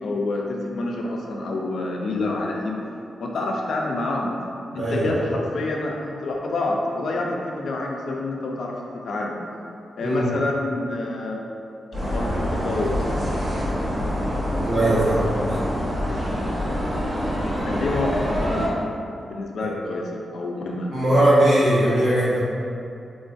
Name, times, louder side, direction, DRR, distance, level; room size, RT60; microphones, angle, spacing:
voice 1, 0.0-2.8 3.2-4.4 4.7-9.4 10.0-11.4 12.0-13.0 17.3-17.4 17.7-18.7 19.2-20.9, left 2 dB, 65° left, 0 dB, 0.4 m, -27 dB
voice 2, 4.7-5.2 10.0-10.2 14.6-15.2 15.5-15.6 19.6-19.7 20.9-22.4, right 1 dB, 60° right, -9 dB, 0.9 m, -19 dB
sound 1, 11.9-18.7, equal, 25° right, 0.7 m, -26 dB
3.6 x 2.5 x 2.3 m, 2.6 s
wide cardioid pair, 170°, 0 cm